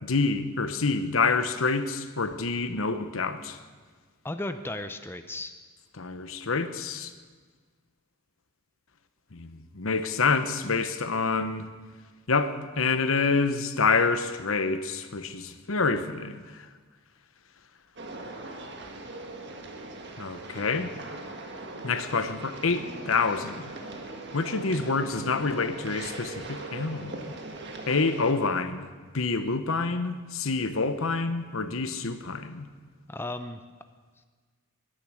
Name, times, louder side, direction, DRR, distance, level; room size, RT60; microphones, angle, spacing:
voice 1, 0.0-3.6 6.0-7.1 9.3-11.7 12.3-16.6 20.2-20.9 21.8-23.7 24.3-27.3 27.9-28.9 29.1-32.7, left 4 dB, 85° left, 10 dB, 1.0 m, -27 dB
voice 2, 4.2-5.5 33.1-33.6, left 2 dB, 10° left, 8 dB, 0.6 m, -35 dB
sound 1, 18.0-28.3, right 2 dB, 55° right, 1.7 m, -40 dB
22.0 x 10.5 x 6.4 m, 1.5 s
head